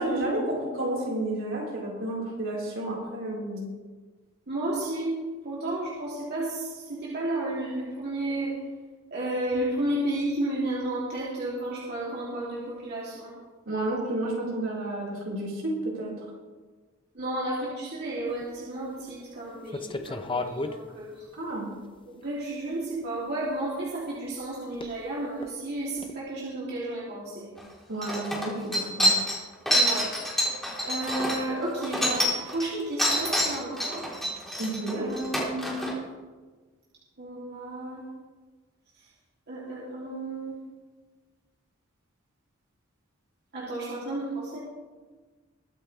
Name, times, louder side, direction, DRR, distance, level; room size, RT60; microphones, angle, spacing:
voice 1, 0.0-3.6 13.7-16.1 21.3-21.7 27.9-29.1 34.6-35.1, right 1 dB, 70° right, -4 dB, 4.5 m, -31 dB
voice 2, 4.5-5.2 5.4-8.6 9.1-13.3 17.1-21.3 22.2-27.5 29.7-30.4 30.8-34.0 35.0-36.0 37.2-38.0 39.5-40.5 43.5-44.6, right 1 dB, 55° right, -7 dB, 3.0 m, -32 dB
sound 1, 18.3-18.4 19.0-19.2 19.7-20.8 21.5-21.6 22.6-22.7 24.7-25.0 25.3-25.5 26.0-26.1, left 2 dB, 25° left, 0.7 m, -33 dB
sound 2, 27.6-27.7 28.0-32.7 33.0-35.9, equal, ahead, 3.7 m, -26 dB
22.5 x 8.7 x 3.4 m, 1.3 s
head